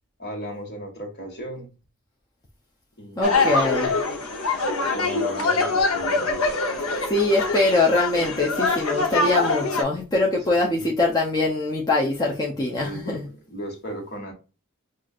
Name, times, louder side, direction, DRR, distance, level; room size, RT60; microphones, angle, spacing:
voice 1, 0.2-1.7 3.0-3.4 4.9-6.4 10.5-10.8 12.7-14.3, equal, 50° left, 1.5 m, -36 dB
sound 1, 3.2-9.8, left 3 dB, 80° left, 0.8 m, -24 dB
voice 2, 3.2-3.9 7.1-13.2, left 2 dB, 20° left, 0.5 m, -23 dB
5.6 x 2.5 x 2.4 m
head